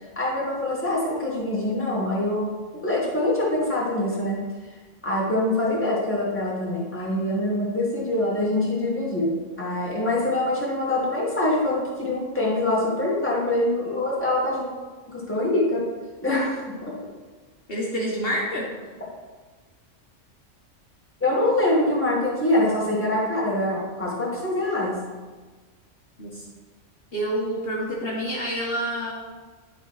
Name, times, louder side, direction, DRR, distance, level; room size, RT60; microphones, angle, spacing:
voice 1, 0.2-2.5 2.8-4.4 5.0-14.7 15.1-15.9 16.2-17.0 21.2-25.0, left 1 dB, 10° left, -5 dB, 1.9 m, -24 dB
voice 2, 17.7-18.7 26.2-26.4 27.1-29.1, equal, 50° left, -4 dB, 1.4 m, -27 dB
10.5 x 4.2 x 4.8 m, 1.4 s
omnidirectional pair, 1.2 m